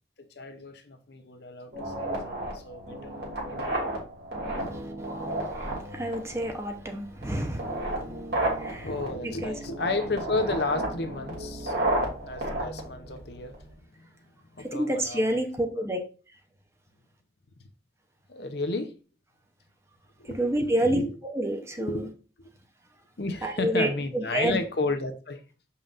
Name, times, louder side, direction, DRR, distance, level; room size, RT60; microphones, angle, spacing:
voice 1, 0.4-3.2 3.5-3.9 4.6-4.7 8.7-11.7 12.0-13.6 14.6-15.4 15.7-15.8 18.3-18.9 20.2-21.1 21.8-22.1 22.4-22.5 23.2-25.4, left 3 dB, 55° left, 0.7 m, -33 dB
sound 1, 1.7-13.7, right 1 dB, 55° right, 2.5 m, -33 dB
voice 2, 5.8-7.8 8.0-8.2 8.6-8.9 9.2-9.6 14.6-16.0 20.2-22.1 23.4-23.9 24.1-24.6, right 1 dB, 15° right, 0.7 m, -28 dB
6.9 x 5.6 x 2.5 m
head